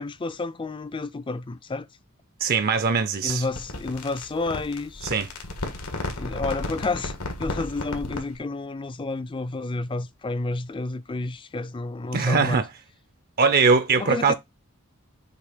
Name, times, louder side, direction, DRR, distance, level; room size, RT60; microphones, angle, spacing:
voice 1, 0.0-1.9 3.2-5.1 6.2-7.1 7.4-12.6 14.0-14.3, left 3 dB, 20° left, 0.4 m, -30 dB
voice 2, 2.4-3.4 5.0-5.3 12.1-12.7 13.4-14.3, right 4 dB, 45° right, 0.5 m, -21 dB
sound 1, 3.3-8.4, left 2 dB, 90° left, 1.7 m, -34 dB
6.7 x 2.8 x 5.1 m
head